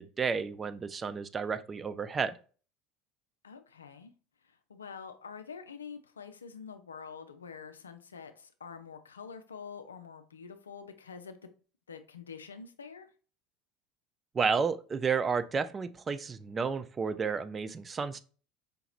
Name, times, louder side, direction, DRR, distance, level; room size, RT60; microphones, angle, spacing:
voice 1, 0.0-2.3 14.3-18.2, right 5 dB, 30° right, 0.4 m, -31 dB
voice 2, 3.4-4.1 4.4-11.4 11.9-13.1, left 6 dB, 85° left, 0.4 m, -46 dB
5.1 x 2.9 x 2.4 m
hypercardioid pair, 70°, 0 cm